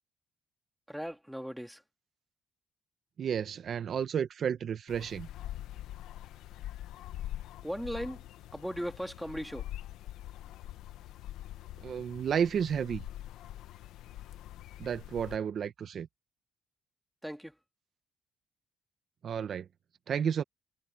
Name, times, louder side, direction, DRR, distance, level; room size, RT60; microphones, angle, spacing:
voice 1, 0.9-1.8 7.6-8.2 8.5-9.7 17.2-17.5, equal, ahead, 2.4 m, -37 dB
voice 2, 3.2-5.3 11.8-13.0 14.8-16.1 19.2-19.7 20.1-20.4, right 8 dB, 60° right, 1.4 m, -32 dB
sound 1, 4.9-15.4, left 13 dB, 90° left, 1.2 m, -44 dB
cardioid pair, 90°, 0 cm